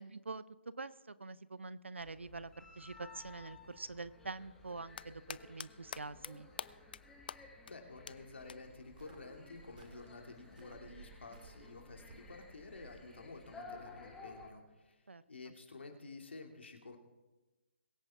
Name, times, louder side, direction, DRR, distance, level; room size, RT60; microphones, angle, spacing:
voice 1, 0.0-6.5 15.1-15.2, right 3 dB, 80° right, 17 dB, 0.7 m, -46 dB
sound 1, 2.0-14.5, left 3 dB, 5° left, 1.7 m, -56 dB
sound 2, 4.7-5.7 5.9-6.3 6.6-7.0 7.3-7.4 7.7-7.8 8.1-8.2 8.5-8.6 10.1-10.2, left 7 dB, 50° left, 0.4 m, -43 dB
voice 2, 7.7-17.0, left 3 dB, 70° left, 3 dB, 2.6 m, -51 dB
Cricket, 8.4-13.5, right 4 dB, 45° right, 2.3 m, -60 dB
22.5 x 9.2 x 3.7 m, 1.1 s
figure-of-eight pair, 145°, 6 cm